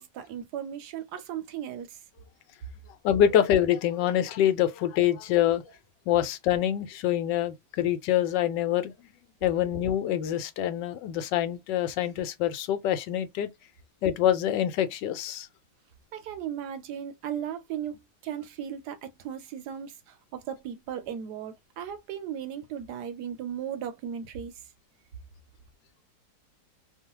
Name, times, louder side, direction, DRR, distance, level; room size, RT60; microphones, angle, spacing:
voice 1, 0.0-2.0 16.1-24.5, right 9 dB, 75° right, 1.1 m, -36 dB
voice 2, 3.0-5.6 6.1-8.9 9.4-13.5 14.0-15.5, left 11 dB, 80° left, 1.2 m, -25 dB
3.0 x 2.1 x 2.8 m
omnidirectional pair, 1.9 m